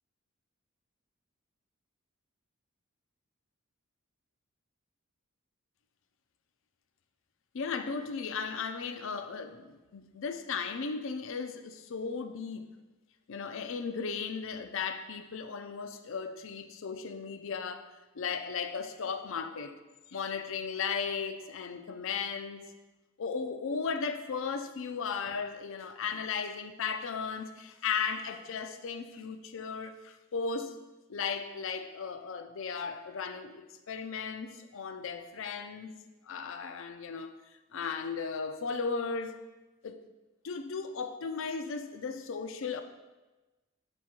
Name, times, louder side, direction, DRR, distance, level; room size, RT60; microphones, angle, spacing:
voice 1, 7.5-12.7 13.3-17.9 18.1-19.8 20.1-22.7 23.2-30.8 31.1-35.9 36.2-37.3 37.7-39.5 39.8-40.0 40.4-42.8, left 5 dB, 65° left, 0.5 m, -36 dB
6.2 x 4.5 x 4.3 m
head